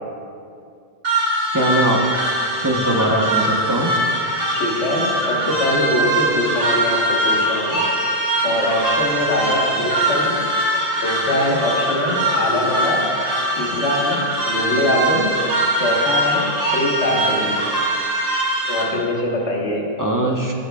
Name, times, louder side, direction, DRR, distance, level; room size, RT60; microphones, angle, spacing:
sound 1, 1.0-18.8, right 1 dB, 80° right, 2.4 m, -22 dB
voice 1, 1.5-2.1 2.6-4.0 20.0-20.5, right 1 dB, 20° right, -1 dB, 0.8 m, -20 dB
voice 2, 4.5-7.9 8.4-10.4 11.0-13.0 13.6-15.3 15.8-17.7 18.7-19.9, left 1 dB, 75° left, -2 dB, 1.7 m, -22 dB
16.0 x 8.3 x 2.3 m, 2.5 s
omnidirectional pair, 1.2 m